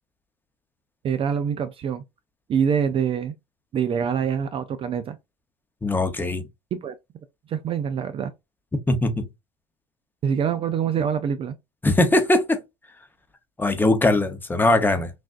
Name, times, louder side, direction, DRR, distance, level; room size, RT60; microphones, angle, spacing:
voice 1, 1.0-2.0 2.5-3.3 3.7-5.2 6.7-6.9 7.5-8.3 10.2-11.5, right 7 dB, 30° right, 0.4 m, -25 dB
voice 2, 5.8-6.4 8.9-9.2 11.8-12.6 13.6-15.1, left 2 dB, 10° left, 0.8 m, -20 dB
6.1 x 2.5 x 2.5 m
supercardioid pair, 120°, 18 cm